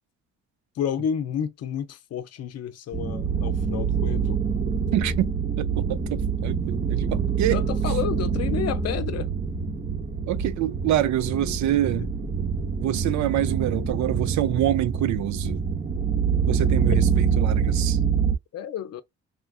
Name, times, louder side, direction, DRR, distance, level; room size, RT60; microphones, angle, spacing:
voice 1, 0.8-4.4 7.5-9.3 16.9-17.0 18.5-19.0, left 9 dB, 55° left, 0.5 m, -30 dB
sound 1, 2.9-18.4, right 6 dB, 25° right, 0.6 m, -25 dB
voice 2, 4.9-7.6 10.3-12.1 12.8-15.6 16.5-18.0, right 12 dB, 70° right, 0.4 m, -26 dB
3.1 x 2.3 x 2.3 m
cardioid pair, 90°, 30 cm